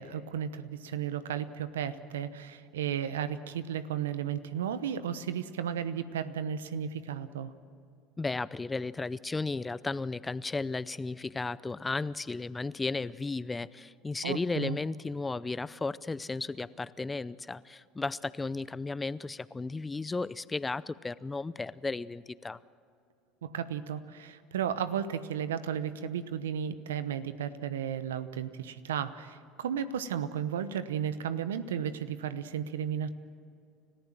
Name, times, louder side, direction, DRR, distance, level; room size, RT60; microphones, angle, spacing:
voice 1, 0.0-7.5 14.2-14.8 23.4-33.1, right 8 dB, 90° right, 13 dB, 0.9 m, -34 dB
voice 2, 8.2-22.6, left 3 dB, 20° left, 18 dB, 0.6 m, -34 dB
30.0 x 14.5 x 7.5 m, 2.4 s
hypercardioid pair, 80°, 0 cm